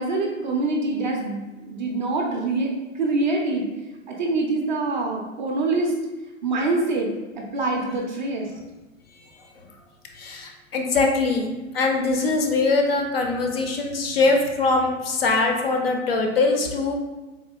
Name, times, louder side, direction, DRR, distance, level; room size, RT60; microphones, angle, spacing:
voice 1, 0.0-2.7 3.0-3.7 4.1-5.9 6.4-7.1 7.3-8.5, right 2 dB, 35° right, 0 dB, 0.4 m, -25 dB
voice 2, 9.1-9.5 10.1-16.9, left 3 dB, 45° left, 3 dB, 0.5 m, -22 dB
3.6 x 2.7 x 2.2 m, 1.1 s
figure-of-eight pair, 110°, 41 cm